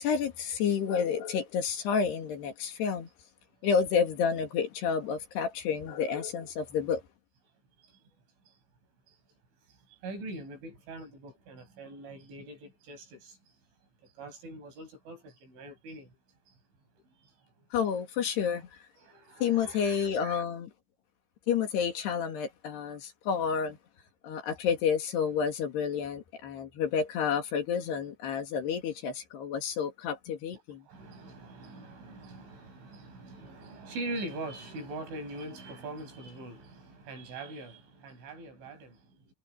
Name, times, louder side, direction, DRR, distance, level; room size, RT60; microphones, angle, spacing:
voice 1, 0.0-3.1 3.6-7.0 17.7-18.7 19.4-20.7 21.5-23.8 24.2-30.8, left 7 dB, 65° left, 4.4 m, -30 dB
voice 2, 9.7-13.4 14.0-16.2 16.5-16.6 17.2-17.3 19.0-20.4 30.9-39.3, right 2 dB, 90° right, 10.5 m, -43 dB
omnidirectional pair, 5.3 m